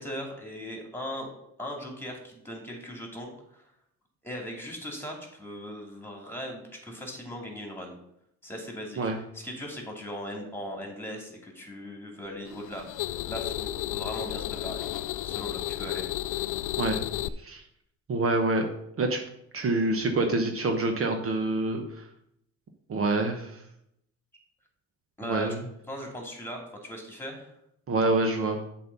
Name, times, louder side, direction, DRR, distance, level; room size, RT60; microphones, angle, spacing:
voice 1, 0.0-1.3 1.6-3.6 4.2-7.9 8.4-12.8 13.2-14.9 15.2-16.1 25.2-25.5 25.9-27.5, equal, 5° left, 1 dB, 2.7 m, -39 dB
sound 1, 12.5-17.3, left 14 dB, 85° left, 0.5 m, -33 dB
voice 2, 18.1-18.7 19.0-19.2 19.5-22.0 22.9-23.6 25.2-25.6 27.9-28.6, right 2 dB, 45° right, 4 dB, 1.1 m, -26 dB
7.5 x 4.4 x 6.9 m, 0.76 s
cardioid pair, 90°, 30 cm